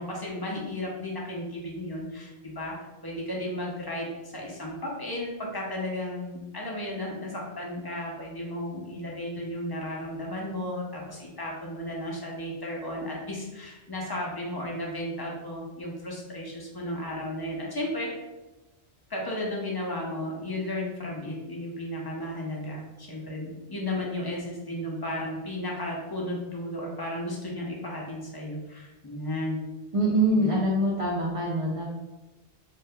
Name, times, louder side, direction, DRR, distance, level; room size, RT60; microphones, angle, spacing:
voice 1, 0.0-2.7 3.0-18.2 19.1-29.6 30.4-30.5, left 1 dB, 30° left, -3 dB, 0.4 m, -34 dB
voice 2, 29.9-31.9, right 1 dB, 45° right, -4 dB, 0.4 m, -24 dB
2.7 x 2.3 x 3.4 m, 1.1 s
omnidirectional pair, 1.1 m